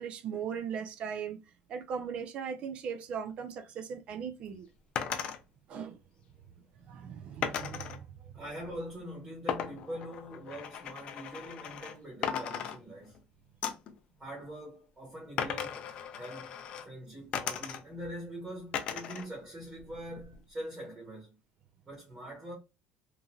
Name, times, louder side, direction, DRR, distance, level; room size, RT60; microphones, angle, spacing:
voice 1, 0.0-1.4 1.7-4.7 5.7-6.0 6.6-8.4, right 7 dB, 45° right, 0.3 m, -39 dB
sound 1, 5.0-5.4 7.4-8.0 9.5-12.0 12.2-13.2 13.6-13.9 15.4-16.9 17.3-18.1 18.7-19.3 19.6-20.4, left 8 dB, 40° left, 0.4 m, -37 dB
voice 2, 8.3-13.2 14.2-16.6 16.8-21.4 21.8-22.5, right 1 dB, 20° right, 1.0 m, -43 dB
3.0 x 2.5 x 2.3 m
cardioid pair, 165°, 3 cm